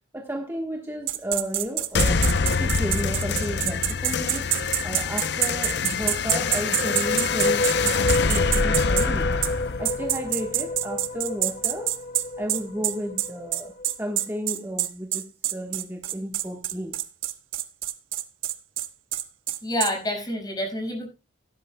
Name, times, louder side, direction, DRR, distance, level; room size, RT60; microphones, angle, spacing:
voice 1, 0.1-4.5 4.8-8.0 8.2-9.4 9.8-12.0 12.4-17.0, equal, 10° right, 1.2 m, -33 dB
sound 1, 1.1-9.1 9.4-9.5 9.8-19.9, right 13 dB, 80° right, 1.2 m, -26 dB
sound 2, 1.9-11.0, left 4 dB, 55° left, 0.6 m, -25 dB
sound 3, 6.7-13.9, left 2 dB, 35° left, 0.9 m, -29 dB
voice 2, 19.6-21.1, left 1 dB, 20° left, 5.7 m, -28 dB
17.0 x 11.0 x 2.2 m
head